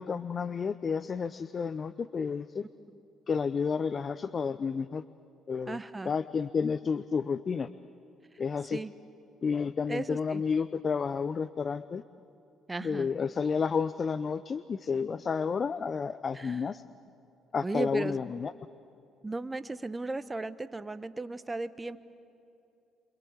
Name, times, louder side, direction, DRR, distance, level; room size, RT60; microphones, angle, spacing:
voice 1, 0.0-2.6 3.3-5.0 5.5-5.8 6.0-7.7 8.4-8.8 9.4-12.0 12.8-16.8 17.5-18.5, left 5 dB, 45° left, 14 dB, 0.6 m, -31 dB
voice 2, 5.7-6.1 8.7-8.9 9.9-10.4 12.7-13.1 16.3-16.7 17.6-18.2 19.2-22.0, right 2 dB, 20° right, 13 dB, 1.0 m, -36 dB
28.5 x 25.0 x 8.2 m, 2.8 s
supercardioid pair, 60°, 0 cm